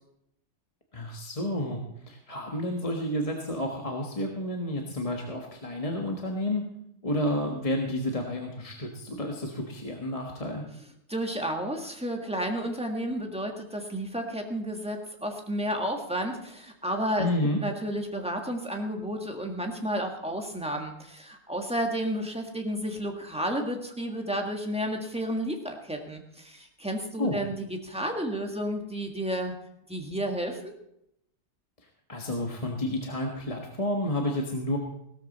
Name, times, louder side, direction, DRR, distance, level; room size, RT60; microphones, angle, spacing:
voice 1, 0.9-1.8 2.1-6.6 7.0-10.6 17.2-17.6 27.2-27.4 32.1-34.8, left 1 dB, 25° left, 1 dB, 1.4 m, -30 dB
voice 2, 11.1-17.3 17.6-29.5 29.9-30.7, equal, 5° right, 2 dB, 1.6 m, -31 dB
16.5 x 13.0 x 4.1 m, 0.78 s
omnidirectional pair, 1.4 m